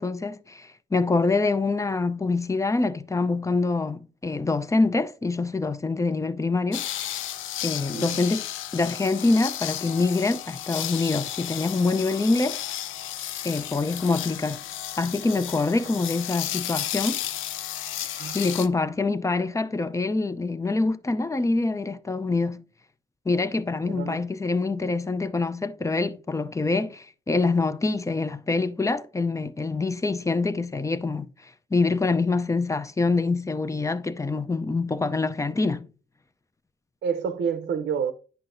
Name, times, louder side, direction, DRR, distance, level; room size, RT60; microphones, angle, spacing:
voice 1, 0.0-6.8 7.6-8.5 8.7-12.6 13.4-14.6 15.0-17.2 18.0-22.6 23.3-35.9, left 3 dB, 15° left, 0.5 m, -25 dB
sound 1, 6.7-18.7, left 12 dB, 85° left, 0.5 m, -33 dB
voice 2, 23.8-24.2 37.0-38.1, right 7 dB, 60° right, 0.6 m, -28 dB
9.6 x 5.8 x 2.6 m
cardioid pair, 90°, 20 cm